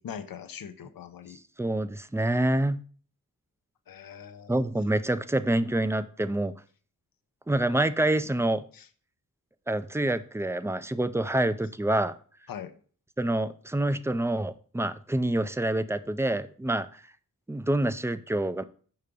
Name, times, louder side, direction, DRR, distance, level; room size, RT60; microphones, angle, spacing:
voice 1, 0.0-1.4 3.9-4.7 8.7-8.9 12.5-12.7, left 8 dB, 80° left, 9 dB, 0.7 m, -41 dB
voice 2, 1.6-2.8 4.5-6.5 7.5-8.6 9.7-12.1 13.2-16.9 17.5-18.6, right 1 dB, 10° right, 13 dB, 0.4 m, -27 dB
5.7 x 4.9 x 5.2 m, 0.43 s
cardioid pair, 65°, 35 cm